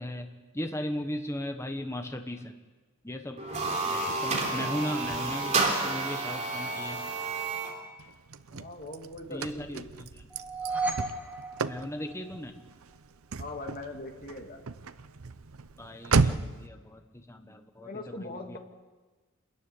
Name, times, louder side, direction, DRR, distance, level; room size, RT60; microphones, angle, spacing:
voice 1, 0.0-2.5 3.0-3.4 3.8-7.1 9.3-10.2 11.7-12.5 15.8-18.6, left 1 dB, 15° left, 5 dB, 1.2 m, -37 dB
sound 1, 3.4-7.8, right 3 dB, 35° right, 3.5 m, -30 dB
Car / Slam, 8.0-16.7, right 4 dB, 85° right, 0.8 m, -34 dB
voice 2, 8.5-9.9 13.4-14.6 17.8-18.6, left 2 dB, 45° left, 3 dB, 2.6 m, -41 dB
sound 2, 10.3-12.6, right 3 dB, 5° right, 2.4 m, -34 dB
27.5 x 14.0 x 9.9 m, 1.3 s
head